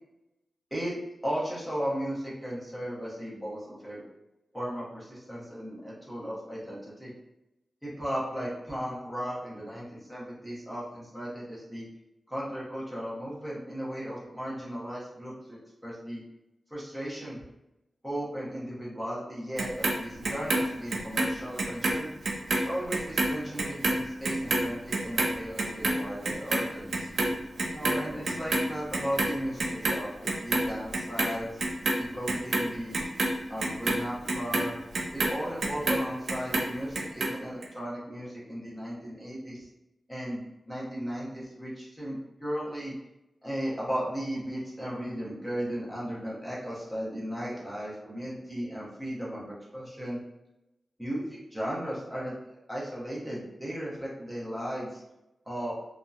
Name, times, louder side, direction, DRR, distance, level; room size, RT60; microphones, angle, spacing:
voice 1, 1.2-4.0 4.5-7.1 7.8-11.9 12.3-16.2 16.7-17.4 18.0-22.1 22.5-27.1 27.7-31.6 31.9-33.0 33.5-34.8 35.1-39.7 40.1-42.9 43.4-50.2 51.0-55.0 55.5-55.7, equal, 5° right, -7 dB, 0.7 m, -36 dB
Clock, 19.6-22.0 22.2-28.7 28.9-30.0 30.3-31.3 31.6-36.0 36.3-37.3 37.6-37.7, right 2 dB, 70° right, 0.4 m, -28 dB
2.7 x 2.1 x 2.3 m, 0.93 s
wide cardioid pair, 155°, 0 cm